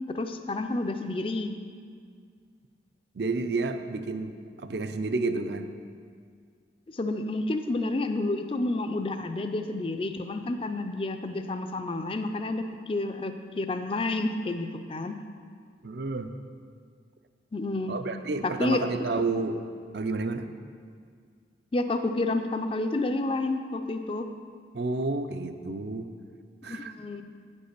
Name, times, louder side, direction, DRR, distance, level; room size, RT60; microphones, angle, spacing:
voice 1, 0.1-1.5 6.9-15.2 17.5-17.9 18.4-18.8 21.7-24.3 26.7-27.2, left 2 dB, 30° left, 7 dB, 0.4 m, -30 dB
voice 2, 3.1-4.3 4.6-5.7 15.8-16.3 17.9-19.6 19.9-20.5 24.7-26.1 26.6-26.9, right 3 dB, 65° right, 9 dB, 0.5 m, -30 dB
9.5 x 5.4 x 6.6 m, 2.1 s
head